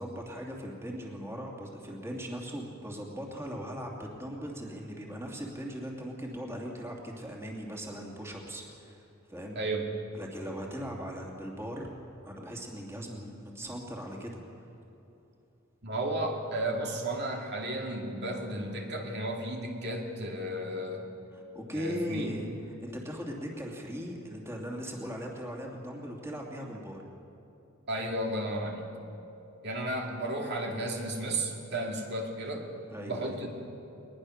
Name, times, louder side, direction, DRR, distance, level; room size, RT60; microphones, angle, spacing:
voice 1, 0.0-9.0 9.3-9.6 10.1-11.9 12.2-14.4 21.3-22.5 22.8-27.0 30.1-30.2 32.9-33.4, equal, 15° right, -1 dB, 2.6 m, -39 dB
voice 2, 9.6-9.9 15.8-21.1 21.7-22.3 27.9-28.9 29.6-32.7 33.1-33.5, right 1 dB, 55° right, 1 dB, 2.3 m, -33 dB
21.0 x 20.5 x 6.5 m, 3.0 s
head